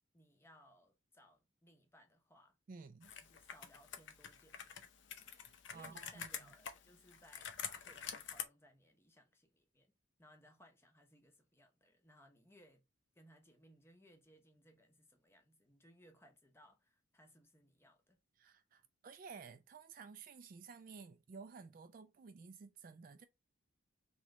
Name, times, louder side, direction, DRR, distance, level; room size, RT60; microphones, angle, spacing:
voice 1, 0.1-2.6 3.2-4.8 5.7-9.9 10.2-12.8 13.2-18.2, equal, 10° left, 0.7 m, -65 dB
voice 2, 2.7-3.1 5.3-6.5 18.4-23.3, right 5 dB, 45° right, 0.3 m, -54 dB
Computer keyboard, 3.0-8.4, left 8 dB, 65° left, 0.6 m, -47 dB
3.1 x 3.0 x 3.6 m
head